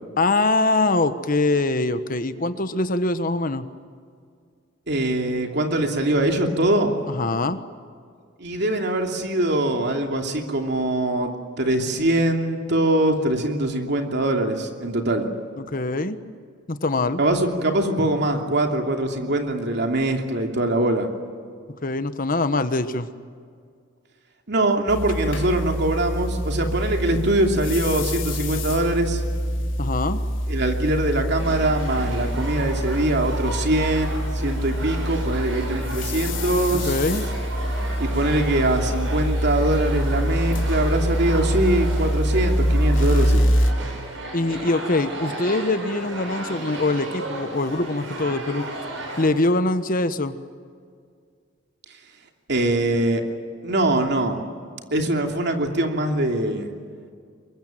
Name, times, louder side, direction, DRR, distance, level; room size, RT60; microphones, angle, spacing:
voice 1, 0.2-3.7 7.1-7.6 15.6-16.2 16.7-17.2 21.8-23.1 29.8-30.2 36.8-37.3 44.3-48.6 49.2-50.4, left 2 dB, 45° left, 11 dB, 1.3 m, -23 dB
voice 2, 4.9-6.9 8.4-15.3 17.2-21.1 24.5-29.2 30.5-36.9 38.0-43.4 52.5-53.2 53.6-54.4 54.9-56.7, right 1 dB, 60° right, 3 dB, 2.9 m, -23 dB
sound 1, 24.9-43.7, equal, 85° left, 3.3 m, -25 dB
sound 2, 31.4-49.3, right 2 dB, 85° right, 6.9 m, -34 dB
24.0 x 22.0 x 9.2 m, 2.1 s
head